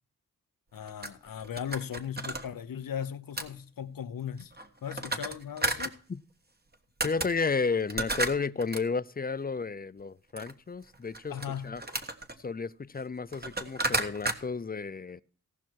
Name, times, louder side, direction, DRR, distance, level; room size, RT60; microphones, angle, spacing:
voice 1, 0.7-4.5 4.8-6.0 11.3-11.7, left 8 dB, 90° left, 0.8 m, -37 dB
sound 1, 0.8-2.4 3.4-3.5 4.4-5.9 6.7-6.8 7.0-7.3 7.8-8.8 10.4-10.5 10.9-12.3 13.0-13.1 13.3-14.4, right 2 dB, 30° right, 1.4 m, -32 dB
voice 2, 7.0-11.8 12.4-15.2, left 4 dB, 30° left, 0.5 m, -32 dB
17.5 x 5.9 x 4.6 m
cardioid pair, 60°, 33 cm